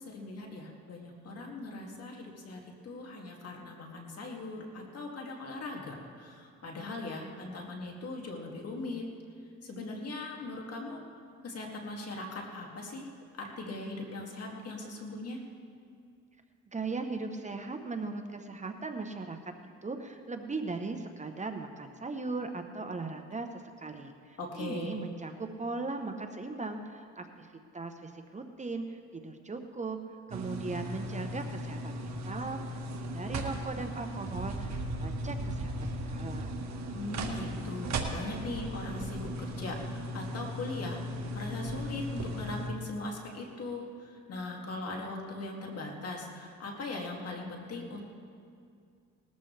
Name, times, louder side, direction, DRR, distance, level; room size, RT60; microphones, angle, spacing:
voice 1, 0.0-9.1 9.6-11.0 11.4-13.1 13.4-15.4 24.4-25.0 36.9-41.0 41.3-48.0, left 2 dB, 55° left, 0 dB, 2.4 m, -40 dB
voice 2, 16.7-19.5 19.8-30.0 30.3-34.7 35.0-36.6, right 3 dB, 25° right, 5 dB, 0.9 m, -38 dB
sound 1, 30.3-42.7, right 1 dB, 65° right, 1.6 m, -37 dB
19.5 x 13.5 x 3.4 m, 2.3 s
cardioid pair, 90°, 30 cm